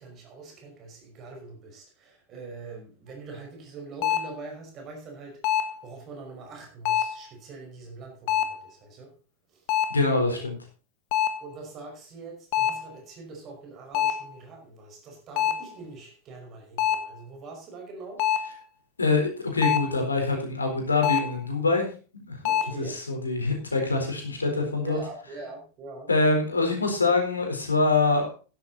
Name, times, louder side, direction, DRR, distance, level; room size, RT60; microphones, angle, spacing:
voice 1, 0.0-9.1 9.5-9.8 10.3-10.5 11.4-18.3 22.5-23.0 24.8-26.1, right 3 dB, 30° right, 2 dB, 5.2 m, -43 dB
sound 1, 4.0-4.4 5.4-5.8 6.9-7.3 8.3-8.7 9.7-10.1 11.1-11.5 12.5-12.9 13.9-14.3 15.4-15.7 16.8-17.1 18.2-18.6 19.6-20.0 21.0-21.4 22.4-22.7, left 10 dB, 45° left, 1.3 m, -25 dB
voice 2, 9.9-10.6 19.0-21.9 22.1-22.4 22.8-25.0 26.1-28.3, left 3 dB, 75° left, 3 dB, 4.1 m, -24 dB
12.0 x 11.0 x 4.1 m, 0.35 s
figure-of-eight pair, 90°, 0 cm